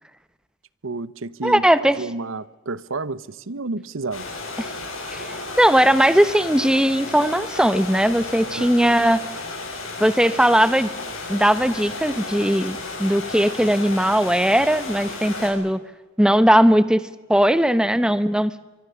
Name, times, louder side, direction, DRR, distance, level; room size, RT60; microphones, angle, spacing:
voice 1, 0.8-1.6 2.0-4.3 8.5-8.8, right 3 dB, 70° right, 0.8 m, -30 dB
voice 2, 1.4-2.0 4.6-4.7 5.1-9.2 10.0-10.9 11.3-15.8 16.2-18.5, equal, 5° right, 0.8 m, -18 dB
sound 1, 4.1-15.5, left 3 dB, 75° left, 7.4 m, -33 dB
25.0 x 23.5 x 6.9 m
head